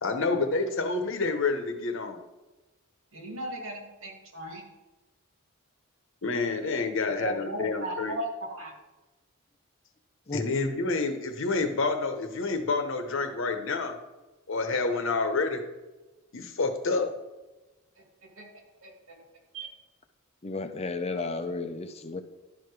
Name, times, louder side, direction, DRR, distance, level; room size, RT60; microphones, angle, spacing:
voice 1, 0.0-2.2 6.2-8.2 10.3-14.0 14.5-15.6 16.3-17.1, left 3 dB, 65° left, 6 dB, 1.0 m, -28 dB
voice 2, 3.1-4.6 7.0-8.7 18.4-18.5 18.8-19.2 19.5-19.7, right 1 dB, 70° right, 1 dB, 2.0 m, -36 dB
voice 3, 20.4-22.2, left 3 dB, 30° left, 8 dB, 0.6 m, -33 dB
11.5 x 4.8 x 4.8 m, 1.1 s
head